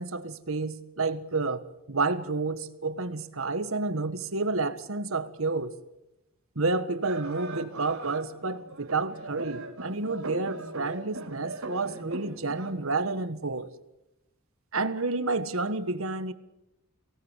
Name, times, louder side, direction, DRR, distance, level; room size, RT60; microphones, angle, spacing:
voice 1, 0.0-1.6 1.9-5.7 6.5-13.7 14.7-16.3, right 3 dB, 70° right, 11 dB, 1.5 m, -30 dB
sound 1, 7.0-12.7, right 3 dB, 85° right, 4.4 m, -39 dB
24.0 x 18.0 x 8.3 m, 0.93 s
head